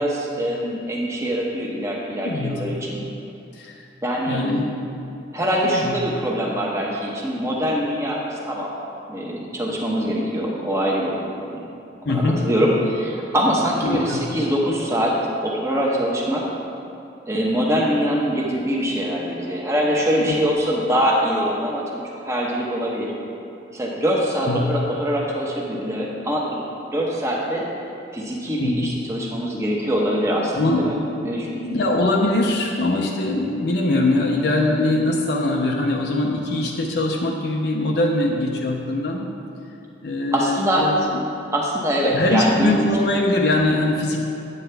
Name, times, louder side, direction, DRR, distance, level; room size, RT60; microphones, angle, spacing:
voice 1, 0.0-3.0 4.0-4.4 5.3-8.7 9.1-11.6 12.1-15.2 15.4-16.4 17.3-23.1 23.7-26.6 26.9-27.7 28.1-31.0 31.2-31.6 40.3-40.9 41.5-42.9, equal, 15° right, -3 dB, 0.9 m, -23 dB
voice 2, 2.2-2.6 3.5-3.8 4.3-4.7 5.6-6.0 12.0-12.5 13.8-14.2 20.2-20.4 24.5-24.6 28.6-28.7 30.6-30.8 31.6-39.3 40.0-40.9 42.1-44.2, left 2 dB, 60° left, 0 dB, 0.6 m, -22 dB
8.5 x 8.2 x 3.4 m, 2.7 s
head